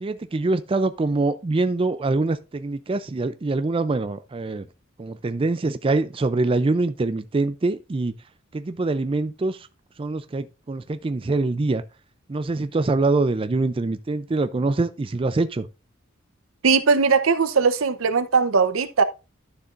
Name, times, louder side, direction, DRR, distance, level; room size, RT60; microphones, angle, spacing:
voice 1, 0.0-4.7 5.0-8.1 8.5-9.7 10.0-11.8 12.3-15.7, right 3 dB, 25° right, 0.4 m, -24 dB
voice 2, 16.6-19.0, right 5 dB, 85° right, 0.7 m, -19 dB
12.0 x 6.8 x 2.5 m
head